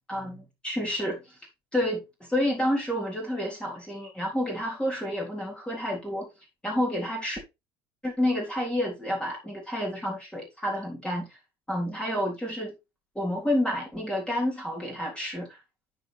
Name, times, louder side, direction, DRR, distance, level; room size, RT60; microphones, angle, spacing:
voice 1, 0.1-1.4 1.7-2.0 2.3-6.3 6.6-7.4 8.0-11.4 11.7-12.8 13.2-15.6, left 1 dB, 5° left, 3.5 m, -29 dB
9.9 x 5.3 x 3.3 m
hypercardioid pair, 65°, 14 cm